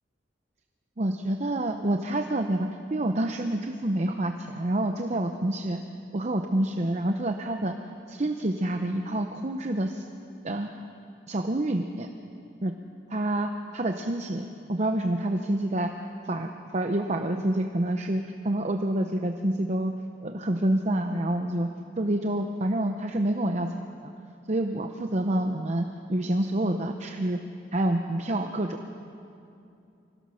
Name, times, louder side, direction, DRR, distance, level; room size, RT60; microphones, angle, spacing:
voice 1, 1.0-5.8 6.1-7.7 8.1-10.0 10.4-10.9 11.3-12.1 12.6-12.7 13.1-15.9 16.2-19.9 20.2-21.7 22.0-23.7 24.0-24.1 24.5-27.4 27.7-28.8, right 1 dB, 40° right, 5 dB, 0.8 m, -27 dB
25.0 x 16.5 x 6.4 m, 2.6 s
head